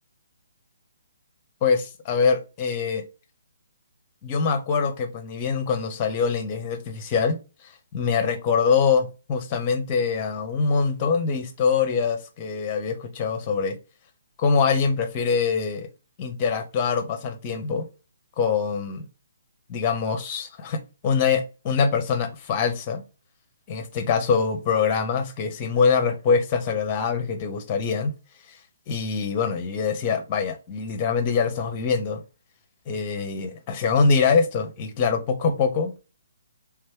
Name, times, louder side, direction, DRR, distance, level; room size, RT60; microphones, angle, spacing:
voice 1, 1.6-3.0 4.2-13.7 14.4-15.9 16.2-17.9 18.4-19.1 19.7-20.8 21.0-23.0 23.7-28.1 28.5-28.6 28.9-32.2 32.9-35.9, left 5 dB, 30° left, 8 dB, 0.9 m, -24 dB
3.5 x 3.3 x 4.5 m, 0.31 s
figure-of-eight pair, 135°, 0 cm